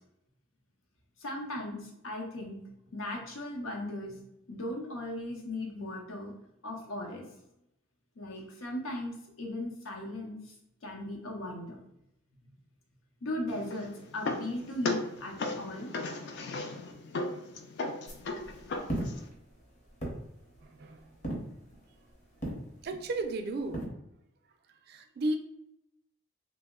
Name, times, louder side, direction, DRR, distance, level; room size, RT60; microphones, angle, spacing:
voice 1, 1.2-2.6 2.9-4.2 4.5-6.3 6.6-7.3 8.2-10.5 10.8-11.8 12.4-12.5 13.2-15.9, left 1 dB, 80° left, 1 dB, 0.7 m, -37 dB
sound 1, 13.5-19.3, left 2 dB, 55° left, 0.3 m, -37 dB
sound 2, 18.1-23.9, right 1 dB, 35° left, 0.7 m, -40 dB
voice 2, 20.6-21.1 22.8-23.9 24.9-25.4, right 2 dB, 50° right, 6 dB, 0.3 m, -34 dB
2.9 x 2.1 x 3.5 m, 0.82 s
head